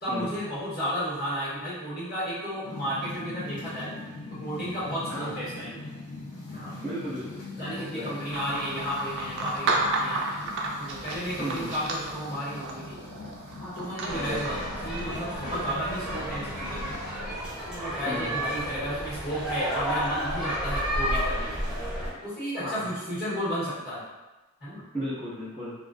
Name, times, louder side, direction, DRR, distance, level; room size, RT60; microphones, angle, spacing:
voice 1, 0.0-3.9 4.3-5.9 6.5-6.7 7.6-13.0 13.6-16.9 17.7-21.6 22.2-24.0 24.6-24.8, equal, 45° left, -11 dB, 1.2 m, -33 dB
sound 1, 2.6-17.4, left 3 dB, 80° left, 0.6 m, -41 dB
voice 2, 6.8-8.3 11.4-11.7 14.1-14.5 18.0-18.4 22.6-22.9 24.9-25.7, equal, 20° left, -15 dB, 0.9 m, -35 dB
sound 2, 8.3-16.2, right 2 dB, 55° right, 0.3 m, -33 dB
sound 3, 14.0-22.1, equal, 5° right, 0.5 m, -32 dB
2.3 x 2.3 x 2.4 m, 1.1 s
head